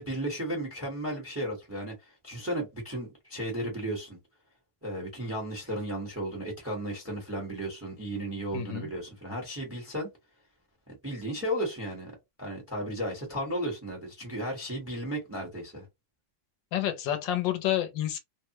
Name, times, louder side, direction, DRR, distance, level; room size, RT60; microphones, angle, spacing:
voice 1, 0.0-4.2 4.8-10.1 10.9-12.1 12.4-15.9, right 1 dB, 10° right, 1.0 m, -34 dB
voice 2, 8.5-8.9 16.7-18.2, left 12 dB, 75° left, 1.3 m, -29 dB
3.4 x 2.1 x 2.9 m
omnidirectional pair, 2.2 m